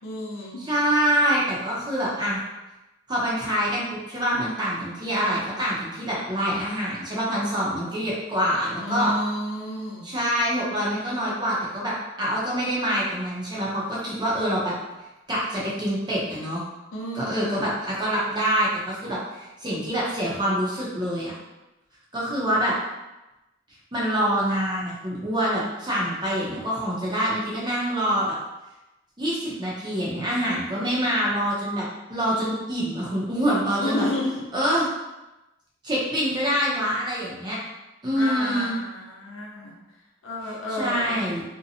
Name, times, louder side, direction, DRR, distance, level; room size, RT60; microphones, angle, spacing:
voice 1, 0.0-0.6 8.8-10.1 16.9-17.7 33.8-34.4 38.2-39.8 40.2-41.2, left 1 dB, 80° left, -3 dB, 0.7 m, -30 dB
voice 2, 0.7-2.4 3.1-9.1 10.0-14.7 15.3-16.6 17.1-21.3 22.1-22.7 23.9-28.3 29.2-34.0 34.5-34.9 35.8-37.6 38.0-38.7 40.8-41.4, equal, 20° right, -6 dB, 0.6 m, -25 dB
2.7 x 2.1 x 2.7 m, 1.0 s
head